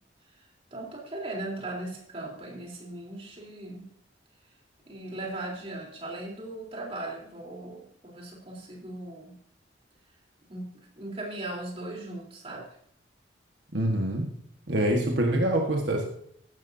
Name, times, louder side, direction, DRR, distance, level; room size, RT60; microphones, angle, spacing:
voice 1, 0.2-3.9 4.9-9.4 10.5-12.7, right 2 dB, 30° right, -2 dB, 3.8 m, -38 dB
voice 2, 13.7-14.3 14.7-16.1, right 1 dB, 70° right, 1 dB, 1.6 m, -25 dB
15.0 x 12.0 x 2.8 m, 0.68 s
head